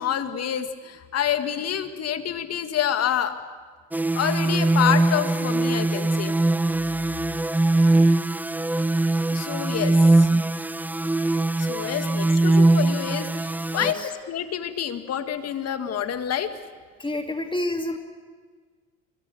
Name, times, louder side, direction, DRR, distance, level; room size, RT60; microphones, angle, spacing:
voice 1, 0.0-3.3 4.1-6.3 9.3-10.4 11.6-14.0 14.3-16.5, left 9 dB, 45° left, 9 dB, 2.1 m, -27 dB
sound 1, 3.9-13.9, right 2 dB, 5° right, 0.6 m, -21 dB
voice 2, 13.8-14.1 17.0-18.0, left 1 dB, 15° left, 5 dB, 2.4 m, -29 dB
25.5 x 21.0 x 7.8 m, 1.5 s
hypercardioid pair, 70°, 35 cm